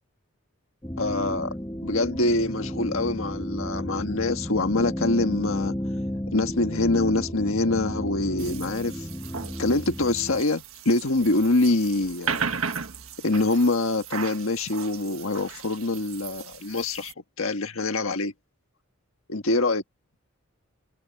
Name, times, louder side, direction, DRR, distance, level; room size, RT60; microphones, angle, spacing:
sound 1, 0.8-10.4, equal, 15° left, 1.3 m, -33 dB
voice 1, 1.0-1.6 1.8-5.8 6.3-9.1 9.6-12.4 13.2-18.3 19.3-19.8, left 2 dB, 70° left, 1.6 m, -25 dB
sound 2, 8.4-17.1, right 6 dB, 75° right, 1.5 m, -36 dB
head